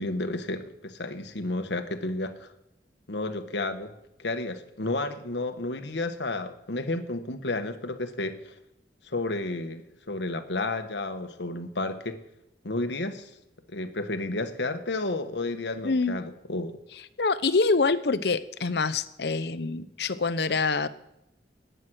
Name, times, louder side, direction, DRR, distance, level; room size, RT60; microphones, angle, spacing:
voice 1, 0.0-2.5 3.1-3.9 4.2-8.5 9.0-12.2 12.6-13.3 13.7-16.8, left 2 dB, 80° left, 8 dB, 1.3 m, -32 dB
voice 2, 15.8-16.2 17.2-20.9, left 4 dB, 65° left, 14 dB, 0.8 m, -25 dB
19.0 x 9.5 x 6.3 m, 0.86 s
head